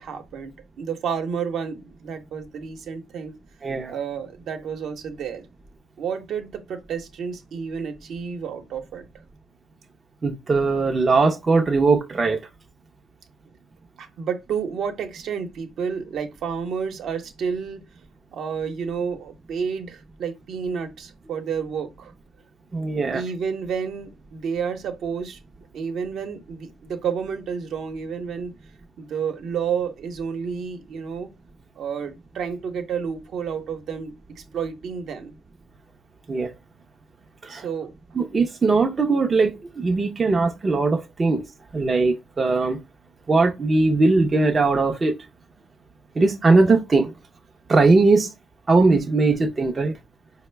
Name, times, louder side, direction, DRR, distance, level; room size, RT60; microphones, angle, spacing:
voice 1, 0.0-3.4 3.9-5.5 6.0-9.1 14.0-17.8 18.3-22.1 23.1-25.4 25.7-28.5 29.0-31.3 31.8-35.4 37.5-37.9, right 6 dB, 65° right, 0.9 m, -30 dB
voice 2, 3.6-3.9 10.2-12.4 22.7-23.2 36.3-36.5 37.4-37.7 38.1-41.5 41.7-42.8 43.3-45.2 46.2-47.1 47.7-48.3 48.7-50.0, right 3 dB, 30° right, 0.5 m, -20 dB
4.4 x 2.1 x 3.3 m
cardioid pair, 110°, 0 cm